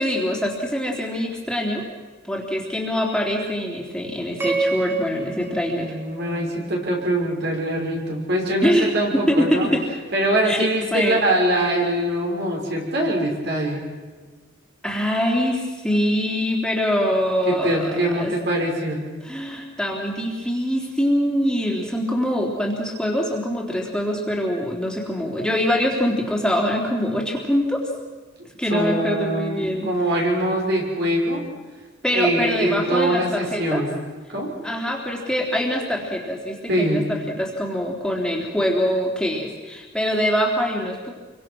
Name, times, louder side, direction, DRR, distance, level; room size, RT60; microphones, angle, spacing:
voice 1, 0.0-1.9 2.2-6.0 8.6-8.9 9.3-9.8 10.4-11.2 14.8-18.3 19.2-27.9 28.6-29.9 32.0-33.8 34.6-41.1, equal, 5° left, -1 dB, 3.4 m, -24 dB
sound 1, 4.4-6.8, right 2 dB, 10° right, 2.3 m, -28 dB
voice 2, 5.7-9.7 10.1-13.8 17.4-19.0 28.7-31.4 32.1-34.0 34.3-34.5 36.7-37.0, right 1 dB, 60° right, -1 dB, 6.5 m, -23 dB
28.0 x 24.0 x 6.3 m, 1.4 s
head